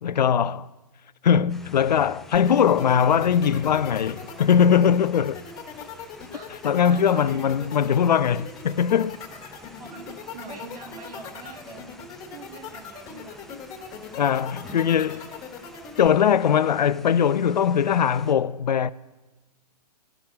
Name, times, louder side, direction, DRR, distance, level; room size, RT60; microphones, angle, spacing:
voice 1, 0.0-0.7 1.2-5.4 6.6-9.2 14.2-15.3 16.0-18.9, left 8 dB, 85° left, 0.4 m, -21 dB
sound 1, 1.5-18.3, left 3 dB, ahead, 0.4 m, -48 dB
sound 2, 2.3-16.1, left 6 dB, 20° left, 1.5 m, -40 dB
voice 2, 2.9-3.3 6.3-7.6 9.8-12.0 12.3-13.5, right 4 dB, 65° right, 2.2 m, -44 dB
11.5 x 6.0 x 8.7 m
hypercardioid pair, 135°, 21 cm